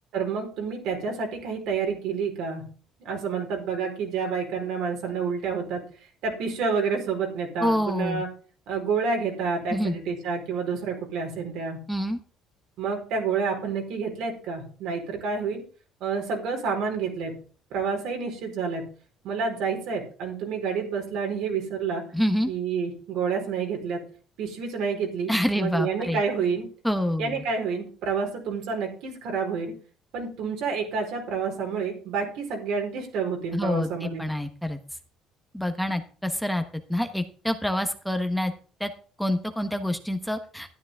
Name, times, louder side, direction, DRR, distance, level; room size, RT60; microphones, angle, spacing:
voice 1, 0.1-2.7 3.0-5.8 6.2-8.3 8.7-11.8 12.8-15.6 16.0-17.3 17.7-18.9 19.2-22.0 22.5-24.0 24.4-26.6 27.2-29.7 30.1-34.2, right 5 dB, 75° right, 2 dB, 4.4 m, -29 dB
voice 2, 7.6-8.2 9.7-9.9 11.9-12.2 22.1-22.5 25.3-26.2 26.8-27.4 33.5-34.8 35.5-36.6 36.9-38.5 38.8-38.9 39.2-40.7, left 1 dB, ahead, 7 dB, 1.1 m, -27 dB
12.5 x 10.0 x 3.6 m, 0.40 s
cardioid pair, 95°, 0 cm